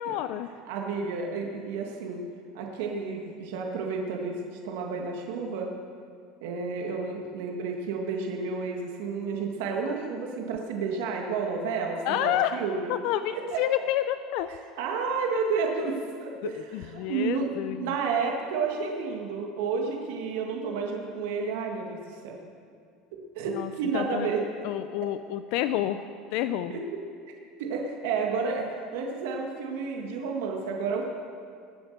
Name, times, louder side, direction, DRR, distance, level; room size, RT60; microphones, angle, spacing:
voice 1, 0.0-0.5 12.1-12.6 12.9-14.5 16.4-17.9 23.5-24.3 24.6-26.0 26.3-26.8, left 12 dB, 60° left, 11 dB, 0.5 m, -29 dB
voice 2, 0.7-2.2 2.5-5.7 6.4-13.0 13.3-13.6 14.5-17.5 17.8-22.4 23.3-24.4 26.7-27.0 27.3-27.4 27.6-28.7 28.9-31.0, right 5 dB, 80° right, 1 dB, 1.9 m, -31 dB
20.0 x 8.2 x 6.7 m, 2.3 s
cardioid pair, 150°, 0 cm